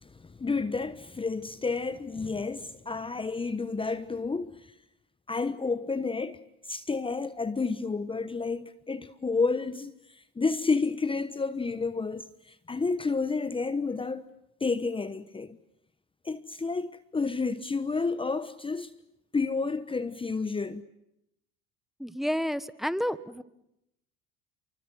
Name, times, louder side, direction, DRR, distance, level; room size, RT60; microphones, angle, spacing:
voice 1, 0.0-4.7 5.3-14.3 14.6-15.6 16.2-18.9 19.3-20.8, left 4 dB, 15° left, 1.2 m, -30 dB
voice 2, 22.0-23.4, equal, ahead, 1.4 m, -30 dB
29.0 x 24.5 x 7.7 m
supercardioid pair, 80°, 30 cm